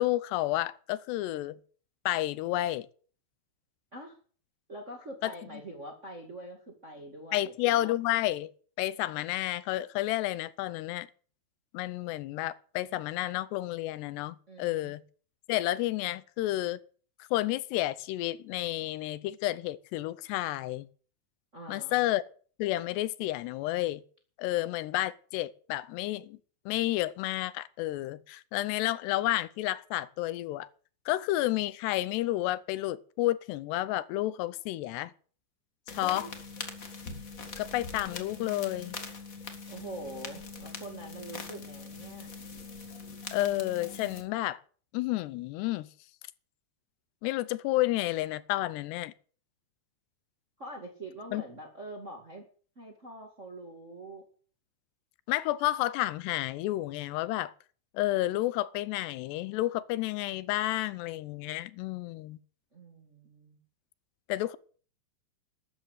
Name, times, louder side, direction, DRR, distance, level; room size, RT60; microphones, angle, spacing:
voice 1, 0.0-1.6 2.1-2.9 5.2-5.3 7.3-8.5 8.8-11.1 11.7-15.0 15.5-16.8 17.2-20.9 21.7-22.2 22.6-24.0 24.4-26.4 26.7-30.7 31.1-35.1 35.9-36.3 37.6-39.0 43.3-44.6 44.9-45.9 47.2-49.1 51.3-51.4 55.3-57.5 57.9-62.4 64.3-64.6, left 16 dB, 85° left, 2.9 m, -31 dB
voice 2, 4.7-7.6 14.5-14.9 21.5-22.1 36.0-36.3 39.7-42.3 50.6-52.4 52.7-54.2 62.7-63.6, right 1 dB, 30° right, 1.5 m, -44 dB
sound 1, 35.9-44.2, left 4 dB, 50° left, 0.9 m, -42 dB
12.5 x 10.0 x 8.1 m
omnidirectional pair, 4.7 m